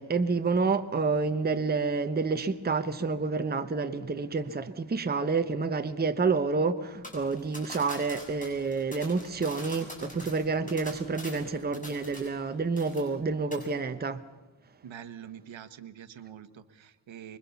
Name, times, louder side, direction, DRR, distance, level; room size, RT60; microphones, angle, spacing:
voice 1, 0.0-14.2, right 4 dB, 20° right, 0.9 m, -29 dB
sound 1, 7.0-12.5 12.8-13.2 13.5-13.7, left 1 dB, 15° left, 7.1 m, -44 dB
voice 2, 14.8-17.4, right 9 dB, 70° right, 1.3 m, -45 dB
25.0 x 22.5 x 7.0 m
wide cardioid pair, 145°, 48 cm